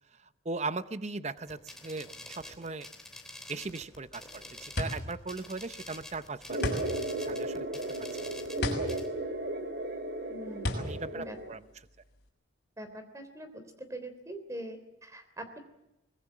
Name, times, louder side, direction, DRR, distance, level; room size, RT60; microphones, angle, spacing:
voice 1, 0.1-2.9 3.5-6.8 7.2-7.8 8.2-8.3 10.8-11.6, right 3 dB, 35° right, 13 dB, 0.8 m, -39 dB
sound 1, 1.4-9.1, left 1 dB, 5° left, 3.1 m, -48 dB
sound 2, 3.9-12.3, left 1 dB, 55° left, 6.1 m, -36 dB
sound 3, 6.5-11.5, right 1 dB, 55° right, 2.4 m, -35 dB
voice 2, 10.3-11.4 12.8-13.6 13.9-15.6, right 1 dB, 15° right, 9 dB, 3.4 m, -43 dB
24.0 x 21.0 x 7.3 m, 0.90 s
head